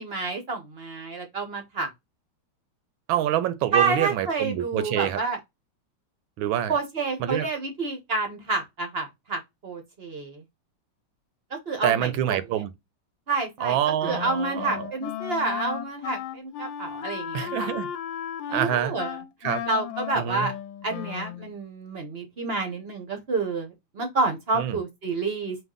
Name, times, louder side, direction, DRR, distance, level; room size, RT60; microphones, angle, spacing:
voice 1, 0.0-1.9 3.7-5.4 6.7-10.4 11.5-12.4 13.3-13.8 14.0-17.7 18.5-19.2 19.7-20.5 20.8-25.6, right 3 dB, 55° right, 0.7 m, -29 dB
voice 2, 3.1-5.2 6.4-6.7 7.2-7.5 11.8-12.7 13.6-14.9 17.3-17.9 18.5-18.9 19.4-19.6 20.1-20.5 24.5-24.8, right 11 dB, 75° right, 1.3 m, -26 dB
Wind instrument woodwind instrument, 14.0-21.5, left 10 dB, 70° left, 1.3 m, -35 dB
5.2 x 2.4 x 3.6 m
omnidirectional pair, 2.3 m